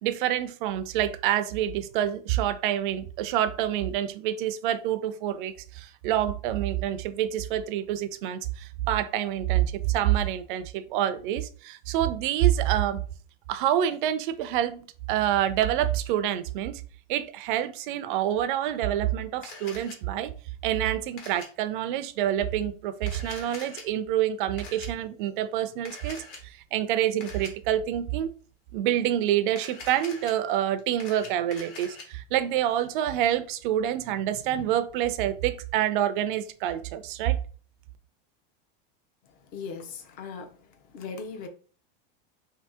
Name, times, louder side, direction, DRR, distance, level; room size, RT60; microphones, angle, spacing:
voice 1, 0.0-13.0 13.5-16.8 17.1-20.3 20.6-26.2 26.7-28.3 28.7-37.4, right 11 dB, 60° right, 0.4 m, -27 dB
Camera, 19.4-20.0 21.2-21.5 23.0-23.8 24.6-24.9 25.8-26.4 27.2-27.5 29.5-30.3 30.8-32.0, left 4 dB, 45° left, 1.1 m, -43 dB
voice 2, 39.5-40.5 40.9-41.5, left 5 dB, 30° left, 0.5 m, -38 dB
2.7 x 2.7 x 3.5 m
supercardioid pair, 165°, 29 cm